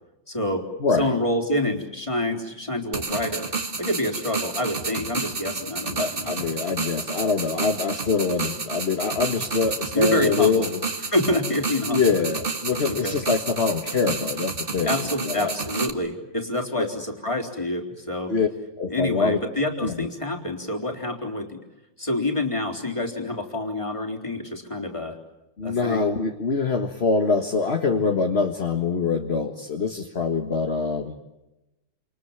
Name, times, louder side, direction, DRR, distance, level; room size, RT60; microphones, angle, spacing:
voice 1, 0.3-0.7 1.0-3.5 3.8-6.6 9.9-10.7 11.1-12.3 12.9-13.2 14.8-18.3 18.9-21.6 22.0-25.2 25.6-26.0, left 1 dB, 15° left, 2 dB, 3.9 m, -27 dB
voice 2, 0.8-1.2 6.0-10.8 11.9-15.5 16.8-16.9 18.3-18.5 18.8-19.4 19.8-20.1 25.6-31.2, left 4 dB, 35° left, 5 dB, 1.9 m, -24 dB
sound 1, 2.9-15.9, right 4 dB, 30° right, 2.1 m, -31 dB
28.5 x 28.5 x 7.3 m, 0.98 s
omnidirectional pair, 2.0 m